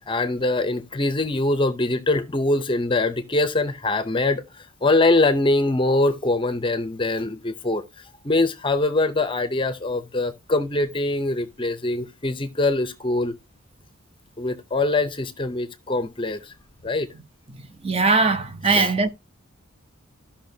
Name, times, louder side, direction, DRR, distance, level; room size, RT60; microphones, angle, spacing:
voice 1, 0.1-4.4 4.8-7.8 8.2-13.4 14.4-16.4 16.8-17.1 18.7-18.9, left 2 dB, 25° left, 0.6 m, -23 dB
voice 2, 17.6-19.1, right 4 dB, 30° right, 0.7 m, -21 dB
13.5 x 5.8 x 2.7 m
head